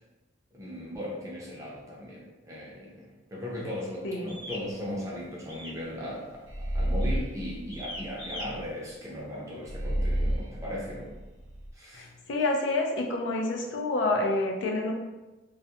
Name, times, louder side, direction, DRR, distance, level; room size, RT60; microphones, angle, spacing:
voice 1, 0.5-11.1 11.7-12.1, left 1 dB, 20° right, -5 dB, 0.6 m, -38 dB
sound 1, 4.3-4.7 5.5-5.8 6.1-6.5 7.0-7.2 7.7-8.5, left 1 dB, 55° left, 1.0 m, -40 dB
sound 2, 6.5-8.6 9.6-11.7, right 1 dB, 85° right, 0.7 m, -31 dB
voice 2, 11.9-14.9, left 2 dB, 80° left, 1 dB, 0.4 m, -28 dB
2.3 x 2.1 x 2.7 m, 1.1 s
head